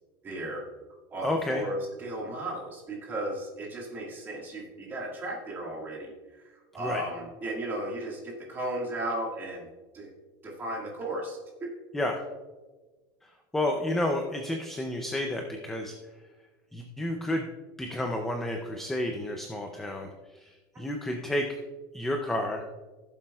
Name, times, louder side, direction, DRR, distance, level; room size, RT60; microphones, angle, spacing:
voice 1, 0.2-0.6 1.1-9.7 9.9-10.1 10.4-11.7, right 1 dB, 15° right, -2 dB, 1.7 m, -35 dB
voice 2, 1.2-1.6 6.7-7.0 11.9-12.2 13.5-15.9 16.7-17.5 17.8-21.6 21.9-22.6, left 1 dB, 5° left, 3 dB, 0.4 m, -31 dB
16.5 x 7.4 x 2.3 m, 1.3 s
supercardioid pair, 180°, 12 cm